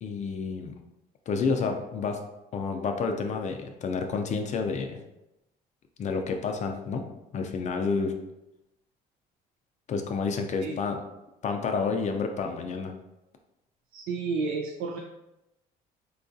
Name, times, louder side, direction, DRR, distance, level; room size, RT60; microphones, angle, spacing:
voice 1, 0.0-0.7 1.3-2.2 2.5-5.0 6.0-7.1 7.3-8.1 9.9-11.0 11.4-12.9, left 5 dB, 45° left, 4 dB, 0.4 m, -29 dB
voice 2, 13.9-15.0, right 4 dB, 75° right, 0 dB, 0.4 m, -31 dB
4.4 x 2.3 x 2.5 m, 0.93 s
cardioid pair, 110°, 17 cm